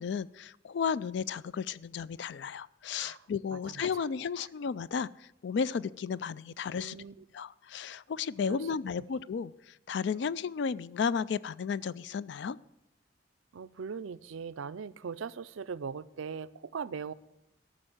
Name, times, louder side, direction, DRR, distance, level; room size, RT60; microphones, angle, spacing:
voice 1, 0.0-7.0 7.3-12.6, left 6 dB, 60° left, 19 dB, 0.3 m, -33 dB
voice 2, 3.0-4.1 6.8-7.2 8.5-8.7 13.5-17.1, right 6 dB, 85° right, 15 dB, 0.4 m, -40 dB
13.5 x 6.3 x 7.7 m, 0.87 s
head